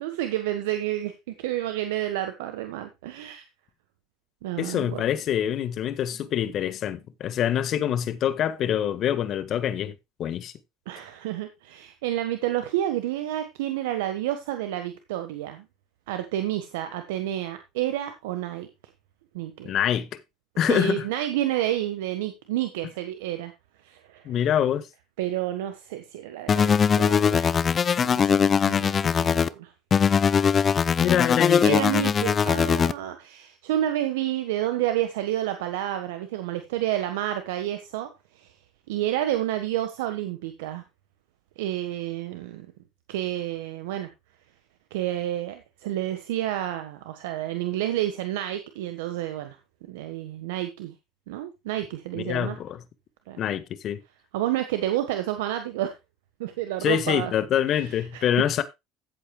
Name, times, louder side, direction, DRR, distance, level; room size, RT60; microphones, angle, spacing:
voice 1, 0.0-3.4 4.4-5.0 10.9-15.6 16.1-18.7 19.3-19.7 20.7-23.5 23.8-24.3 25.2-27.5 28.0-29.7 31.6-38.1 38.3-38.5 38.9-40.8 41.6-42.7 43.1-44.1 44.9-49.6 49.9-50.9 51.3-52.6 53.3-53.4 54.3-55.9 56.4-57.3 57.7-58.3, right 13 dB, 85° right, 1.4 m, -30 dB
voice 2, 4.6-9.9 10.2-10.5 19.6-20.1 20.6-21.0 24.2-24.9 31.0-31.8 52.1-52.8 53.4-54.0 56.8-58.6, left 10 dB, 55° left, 1.6 m, -25 dB
sound 1, 26.5-29.5 29.9-32.9, left 7 dB, 35° left, 0.7 m, -21 dB
15.0 x 8.3 x 2.3 m
hypercardioid pair, 80°, 0 cm